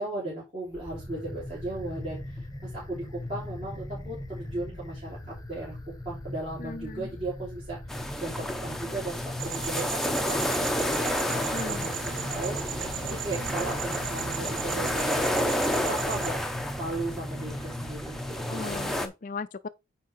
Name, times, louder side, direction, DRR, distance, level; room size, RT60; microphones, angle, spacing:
voice 1, 0.0-12.0 12.3-15.3 15.6-18.4, right 2 dB, 30° right, 3.3 m, -37 dB
sound 1, 0.7-19.0, left 1 dB, 20° left, 1.1 m, -39 dB
voice 2, 6.6-7.1 11.5-11.9 18.5-19.7, left 4 dB, 40° left, 0.4 m, -37 dB
sound 2, 7.9-19.1, left 1 dB, ahead, 0.7 m, -31 dB
sound 3, 9.4-16.3, right 8 dB, 85° right, 0.6 m, -37 dB
9.2 x 3.6 x 4.6 m
head